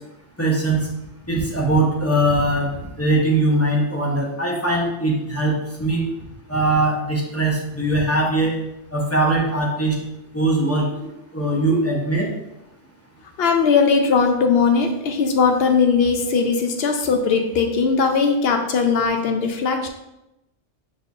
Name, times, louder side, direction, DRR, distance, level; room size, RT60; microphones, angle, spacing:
voice 1, 0.4-0.8 1.3-2.7 3.0-6.0 6.5-8.5 8.9-9.9 10.3-10.9 11.3-12.3, right 2 dB, 15° left, -3 dB, 0.7 m, -20 dB
voice 2, 13.4-19.9, left 5 dB, 65° left, 5 dB, 0.8 m, -19 dB
5.3 x 4.1 x 2.4 m, 0.90 s
omnidirectional pair, 1.2 m